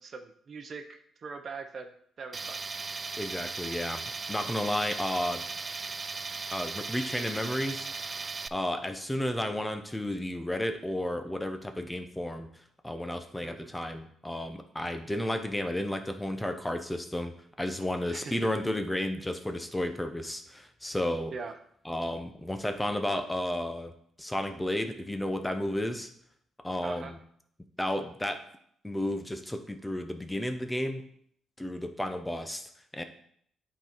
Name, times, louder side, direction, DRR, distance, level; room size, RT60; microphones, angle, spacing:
voice 1, 0.0-1.9 2.2-2.6 13.4-13.7 18.1-18.5 21.3-21.6 26.8-27.1, right 4 dB, 50° right, 7 dB, 0.8 m, -41 dB
Tools, 2.3-8.5, right 4 dB, 30° right, 0.3 m, -37 dB
voice 2, 3.2-5.4 6.5-12.5 12.8-17.3 17.6-21.3 21.8-23.9 24.2-26.1 26.6-27.2 27.8-28.5 28.8-31.0 31.6-33.0, left 1 dB, 10° left, 7 dB, 0.7 m, -32 dB
8.9 x 4.0 x 4.5 m, 0.66 s
cardioid pair, 90°, 0 cm